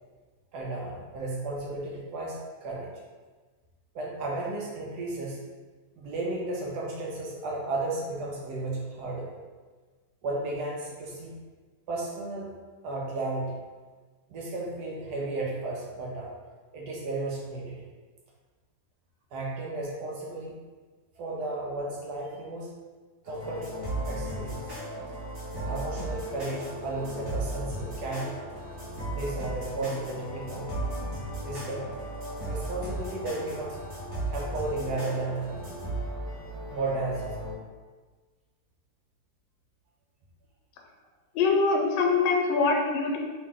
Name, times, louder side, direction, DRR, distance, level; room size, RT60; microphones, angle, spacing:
voice 1, 0.5-2.9 3.9-5.4 6.0-9.3 10.2-11.4 11.9-12.5 12.8-13.6 14.3-16.3 16.7-17.8 19.3-20.6 21.2-22.7 23.2-24.6 25.7-28.4 29.1-30.7 31.4-32.0 32.4-33.8 34.3-35.6 36.7-37.5, right 2 dB, 65° right, -3 dB, 1.2 m, -34 dB
sound 1, 23.2-37.5, right 1 dB, 35° right, 1.3 m, -36 dB
voice 2, 41.3-43.2, left 4 dB, 85° left, 1 dB, 1.4 m, -24 dB
3.1 x 3.0 x 3.6 m, 1.4 s
omnidirectional pair, 2.1 m